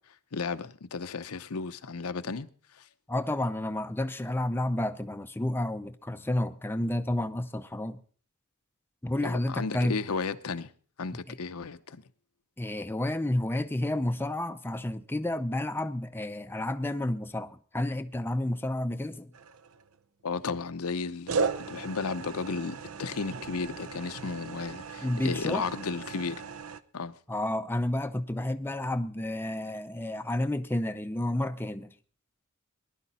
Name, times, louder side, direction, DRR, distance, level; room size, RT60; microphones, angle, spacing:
voice 1, 0.3-2.9 9.2-10.7 11.0-12.0 20.2-26.4 26.9-27.1, left 4 dB, 75° left, 0.7 m, -34 dB
voice 2, 3.1-8.0 9.0-10.0 12.6-19.3 25.0-25.7 27.3-31.9, left 1 dB, 10° left, 0.5 m, -30 dB
sound 1, 19.3-20.0 21.3-26.8, right 5 dB, 65° right, 0.7 m, -36 dB
19.5 x 11.0 x 4.2 m
head